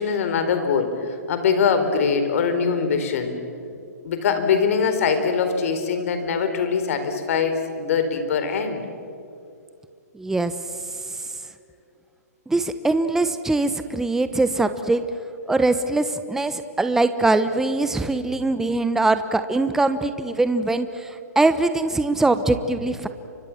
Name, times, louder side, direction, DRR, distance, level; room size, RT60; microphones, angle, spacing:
voice 1, 0.0-3.4 4.0-8.8, left 6 dB, 55° left, 8 dB, 4.2 m, -22 dB
voice 2, 10.1-10.5 12.5-15.0 15.5-23.1, right 2 dB, 5° right, 10 dB, 1.0 m, -22 dB
29.5 x 25.0 x 7.3 m, 2.4 s
hypercardioid pair, 135°, 9 cm